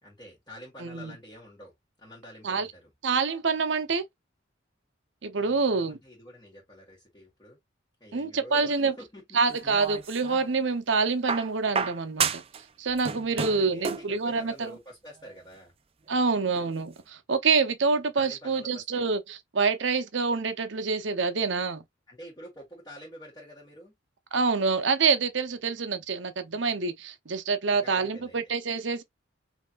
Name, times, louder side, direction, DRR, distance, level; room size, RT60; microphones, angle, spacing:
voice 1, 0.0-1.7 2.0-2.9 5.4-7.6 8.0-9.4 13.2-15.7 18.1-19.1 22.1-23.9 27.7-28.4, equal, 20° left, 1.7 m, -47 dB
voice 2, 0.8-1.1 2.4-2.7 3.0-4.0 5.2-6.0 8.1-8.9 9.3-12.4 12.8-14.7 16.1-21.8 24.3-29.0, right 4 dB, 70° right, 0.8 m, -26 dB
sound 1, 9.5-10.5 11.3-12.6 12.9-14.1 15.2-15.3, right 5 dB, 30° right, 0.5 m, -31 dB
5.4 x 2.9 x 2.5 m
head